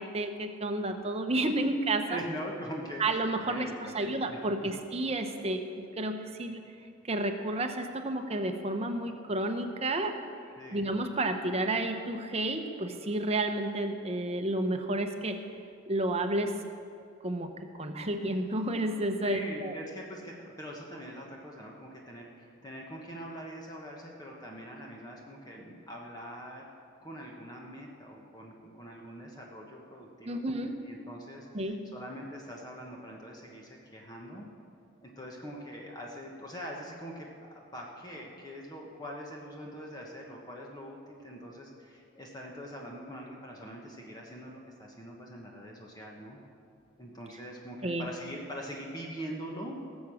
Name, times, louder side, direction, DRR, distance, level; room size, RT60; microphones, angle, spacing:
voice 1, 0.0-2.2 3.0-6.6 7.0-10.1 10.7-15.4 15.9-16.5 17.2-17.5 17.8-19.7 30.2-30.7 31.5-31.9 47.8-48.1, right 2 dB, 30° right, 5 dB, 0.9 m, -31 dB
voice 2, 2.0-3.0 3.4-4.4 10.6-10.9 19.2-26.6 27.0-30.4 30.8-34.5 35.0-46.4 47.0-49.8, equal, 20° left, -1 dB, 1.2 m, -43 dB
18.5 x 7.3 x 6.4 m, 2.5 s
head